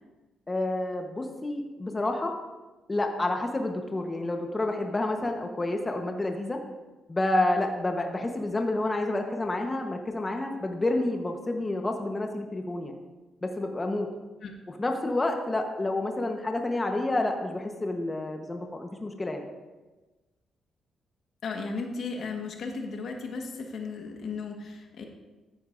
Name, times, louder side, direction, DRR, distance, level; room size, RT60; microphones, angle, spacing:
voice 1, 0.5-2.3 2.9-6.6 7.1-12.9 13.4-14.1 14.8-19.4, left 2 dB, 25° left, 3 dB, 1.1 m, -29 dB
voice 2, 21.4-25.0, left 4 dB, 65° left, 2 dB, 1.5 m, -35 dB
14.0 x 9.9 x 2.6 m, 1.2 s
cardioid pair, 85°, 0 cm